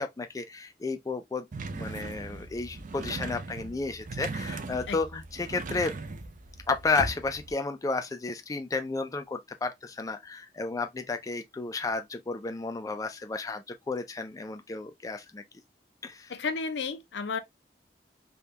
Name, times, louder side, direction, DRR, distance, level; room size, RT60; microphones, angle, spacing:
voice 1, 0.0-5.9 6.7-15.4 16.0-16.3, left 3 dB, 20° left, 0.3 m, -32 dB
sound 1, 1.5-7.5, right 3 dB, 50° right, 0.5 m, -38 dB
voice 2, 16.3-17.4, left 4 dB, 75° left, 0.5 m, -32 dB
3.5 x 2.3 x 2.7 m
head